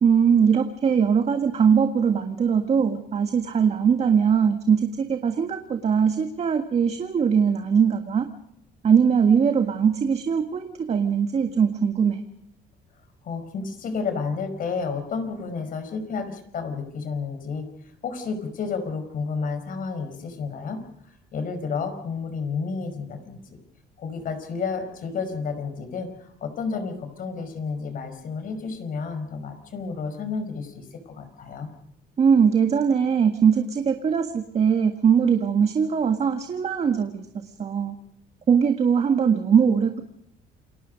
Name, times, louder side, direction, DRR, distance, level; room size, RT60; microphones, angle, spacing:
voice 1, 0.0-8.3 8.8-12.2 32.2-37.9 38.5-40.0, right 7 dB, 40° right, 6 dB, 1.7 m, -21 dB
voice 2, 13.2-17.7 18.0-23.4 24.0-31.7, left 5 dB, 55° left, 8 dB, 5.0 m, -31 dB
28.5 x 20.0 x 5.3 m, 0.75 s
cardioid pair, 110°, 17 cm